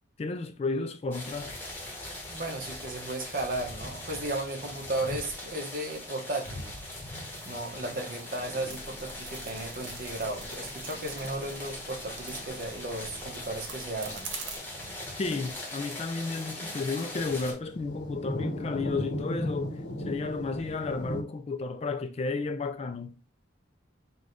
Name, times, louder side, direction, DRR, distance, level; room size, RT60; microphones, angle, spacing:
voice 1, 0.2-1.6 15.2-23.1, left 3 dB, 30° left, 0.3 m, -32 dB
sound 1, 1.1-17.5, left 1 dB, 10° left, 1.1 m, -41 dB
voice 2, 2.3-6.7 7.4-14.3, right 2 dB, 45° right, 0.9 m, -35 dB
sound 2, 3.5-5.6 5.9-6.1 6.4-21.2, left 1 dB, 65° left, 0.8 m, -41 dB
sound 3, 8.6-14.6, right 4 dB, 75° right, 1.0 m, -45 dB
4.8 x 2.3 x 3.8 m
head